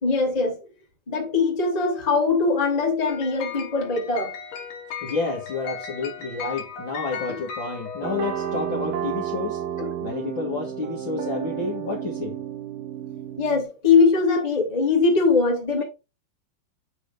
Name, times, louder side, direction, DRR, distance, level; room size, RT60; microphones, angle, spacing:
voice 1, 0.0-0.6 1.1-4.3 9.8-9.9 13.4-15.8, left 4 dB, 15° left, 1.6 m, -21 dB
sound 1, 3.1-9.1, left 6 dB, 60° left, 3.1 m, -36 dB
voice 2, 5.0-9.6 10.0-12.4, left 4 dB, 45° left, 1.7 m, -30 dB
sound 2, 8.0-13.6, right 10 dB, 70° right, 2.8 m, -31 dB
8.7 x 3.8 x 4.9 m
omnidirectional pair, 4.3 m